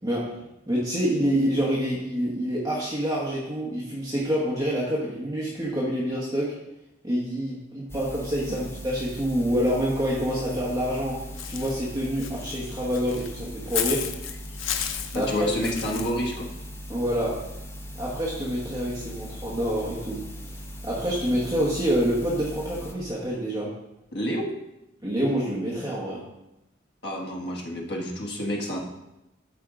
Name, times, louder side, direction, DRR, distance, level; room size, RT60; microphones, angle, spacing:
voice 1, 0.7-6.5 7.0-11.2 11.5-14.1 15.1-15.3 16.9-17.4 18.0-20.2 20.8-23.7 25.0-26.2, equal, 20° right, -5 dB, 1.3 m, -27 dB
sound 1, 7.9-22.9, equal, 15° left, 0.7 m, -39 dB
Walk footsteps / Bird, 11.4-16.1, left 9 dB, 90° left, 0.7 m, -33 dB
voice 2, 15.1-16.5 24.1-24.5 27.0-28.8, equal, 60° left, -1 dB, 1.5 m, -29 dB
12.0 x 4.7 x 3.8 m, 0.91 s
head